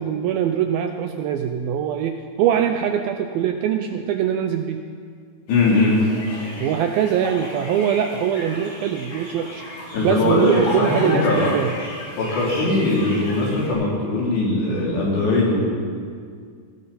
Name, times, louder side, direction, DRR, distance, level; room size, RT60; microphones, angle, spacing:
voice 1, 0.0-4.8 6.6-9.6 10.0-11.7, right 9 dB, 80° right, 6 dB, 2.2 m, -22 dB
voice 2, 5.5-6.0 9.9-10.5 10.8-11.5 12.2-15.6, left 2 dB, 80° left, -4 dB, 5.7 m, -20 dB
sound 1, 5.5-13.7, left 1 dB, 60° left, 7.3 m, -34 dB
19.5 x 17.0 x 4.3 m, 2.1 s
omnidirectional pair, 4.9 m